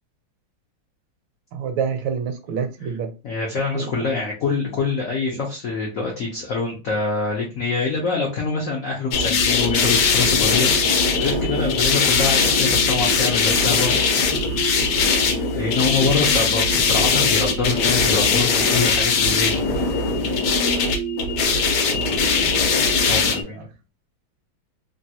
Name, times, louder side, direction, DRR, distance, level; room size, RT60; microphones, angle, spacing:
voice 1, 1.5-3.1 3.7-4.2 21.8-22.4 23.2-23.7, right 6 dB, 80° right, 6 dB, 1.3 m, -29 dB
voice 2, 3.2-14.0 15.3-19.9 23.1-23.7, left 4 dB, 85° left, -1 dB, 0.7 m, -25 dB
sound 1, 9.1-23.4, left 4 dB, 65° left, 1.1 m, -20 dB
3.3 x 2.3 x 2.7 m, 0.31 s
omnidirectional pair, 2.3 m